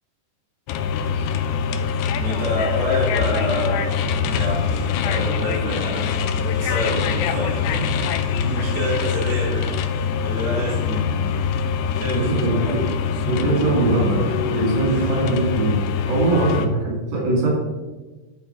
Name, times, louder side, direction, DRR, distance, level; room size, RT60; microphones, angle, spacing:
sound 1, 0.7-16.7, left 6 dB, 85° left, 1.7 m, -24 dB
voice 1, 2.2-3.9 4.3-8.1 8.4-11.4 11.9-12.9 14.9-15.1, left 1 dB, 25° right, -7 dB, 2.1 m, -28 dB
voice 2, 12.1-12.8 13.2-17.5, right 2 dB, 90° right, -4 dB, 4.5 m, -21 dB
12.0 x 4.2 x 4.7 m, 1.2 s
omnidirectional pair, 4.0 m